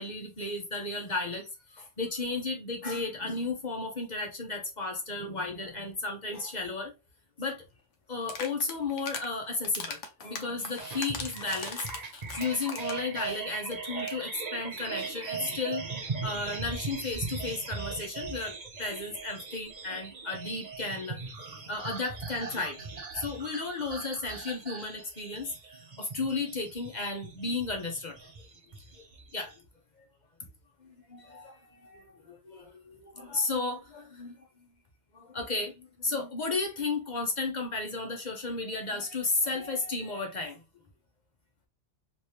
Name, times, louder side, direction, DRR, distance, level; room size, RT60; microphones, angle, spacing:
voice 1, 0.0-6.9 7.4-7.6 8.1-12.1 12.4-21.2 21.5-22.9 23.1-25.5 26.0-28.3 29.0-29.1 29.3-29.6 30.0-30.1 30.4-30.5 30.8-34.5 35.1-40.6, left 3 dB, 40° left, 1.0 m, -34 dB
sound 1, 8.2-9.3 9.6-13.1 13.4-13.5 13.7-13.8 14.0-14.2, left 5 dB, 80° left, 1.1 m, -39 dB
sound 2, 10.8-29.5, right 4 dB, 40° right, 0.8 m, -39 dB
3.3 x 3.2 x 2.8 m
omnidirectional pair, 1.2 m